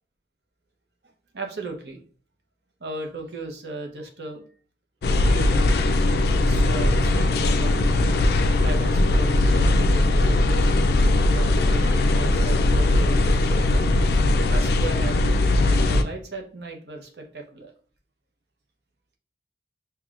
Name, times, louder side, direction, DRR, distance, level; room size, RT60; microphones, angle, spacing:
voice 1, 1.3-2.0 2.8-4.4 5.2-5.7 6.3-7.7 8.6-10.8 11.3-13.9 14.5-15.3 15.6-17.7, right 2 dB, 70° right, 3 dB, 0.8 m, -36 dB
sound 1, 5.0-16.0, left 2 dB, 60° left, 0.3 m, -20 dB
5.6 x 2.2 x 2.4 m, 0.43 s
head